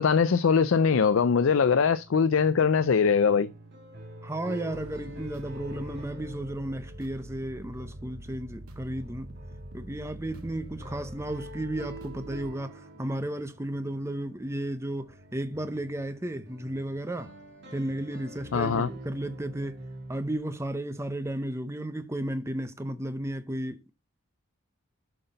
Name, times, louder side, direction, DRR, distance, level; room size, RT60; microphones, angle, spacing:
voice 1, 0.0-3.5 18.5-18.9, left 6 dB, 65° left, 0.4 m, -22 dB
sound 1, 0.7-20.4, equal, 50° right, 2.3 m, -46 dB
voice 2, 4.2-9.3 9.7-17.3 17.7-19.8 20.1-23.9, right 1 dB, 15° right, 0.7 m, -34 dB
sound 2, 4.7-12.5, right 1 dB, 85° right, 1.1 m, -46 dB
7.8 x 6.0 x 5.3 m
head